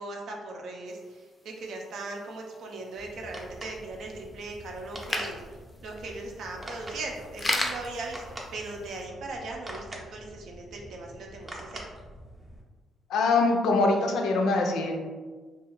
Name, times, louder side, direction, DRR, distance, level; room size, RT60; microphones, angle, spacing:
voice 1, 0.0-5.4 5.8-11.9, right 2 dB, 70° right, 0 dB, 0.5 m, -39 dB
sound 1, 0.9-9.0, left 1 dB, 20° left, 0.4 m, -38 dB
Tactile Button Click, 3.0-12.6, right 1 dB, 25° right, 0.6 m, -45 dB
voice 2, 13.1-15.1, left 3 dB, 80° left, 2 dB, 0.4 m, -23 dB
2.4 x 2.3 x 3.0 m, 1.4 s
cardioid pair, 90°, 0 cm